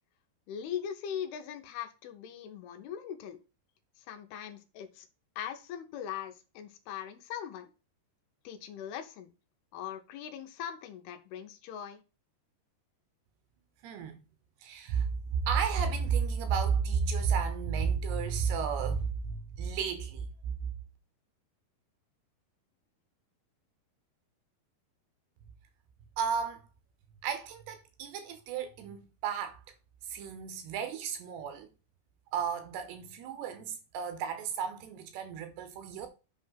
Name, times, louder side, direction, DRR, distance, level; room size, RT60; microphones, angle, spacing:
voice 1, 0.5-3.4 4.1-5.1 5.4-7.7 8.4-9.3 9.7-12.0, left 9 dB, 80° left, 2.8 m, -40 dB
voice 2, 13.8-14.2 14.6-15.1 15.4-20.7 26.2-26.7 27.2-29.6 30.1-31.7 32.3-36.1, right 6 dB, 80° right, 3.1 m, -32 dB
8.1 x 3.3 x 5.7 m
omnidirectional pair, 4.7 m